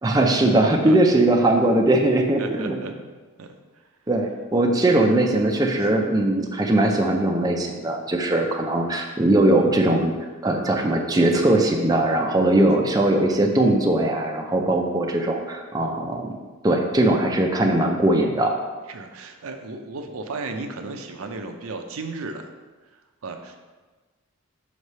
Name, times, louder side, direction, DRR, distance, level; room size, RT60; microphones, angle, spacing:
voice 1, 0.0-2.8 4.1-10.1 10.4-16.3 16.6-18.5, right 1 dB, 15° right, 1 dB, 0.4 m, -20 dB
voice 2, 0.6-1.0 2.4-2.9 3.4-3.8 18.9-22.5 23.2-23.6, right 3 dB, 75° right, 5 dB, 0.6 m, -34 dB
5.8 x 3.2 x 5.4 m, 1.3 s
head